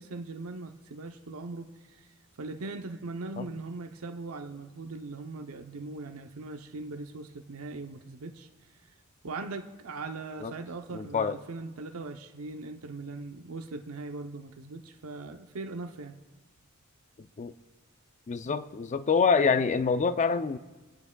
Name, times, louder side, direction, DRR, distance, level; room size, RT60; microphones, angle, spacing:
voice 1, 0.0-2.1 2.4-8.5 9.2-16.2, right 3 dB, 75° right, 0.7 m, -40 dB
voice 2, 10.9-11.4 17.4-17.5 18.3-20.6, left 5 dB, 35° left, 0.4 m, -26 dB
28.0 x 9.6 x 2.3 m
head